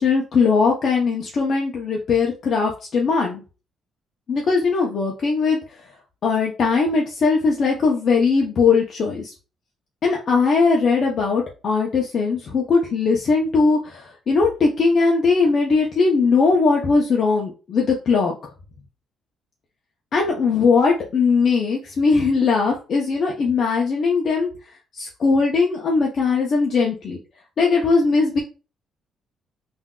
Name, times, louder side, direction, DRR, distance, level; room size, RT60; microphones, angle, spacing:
voice 1, 0.0-3.4 4.3-5.6 6.2-9.3 10.0-18.3 20.1-24.5 24.9-27.2 27.6-28.4, left 4 dB, 55° left, -1 dB, 0.6 m, -19 dB
3.6 x 2.6 x 2.3 m, 0.33 s
cardioid pair, 90°, 0 cm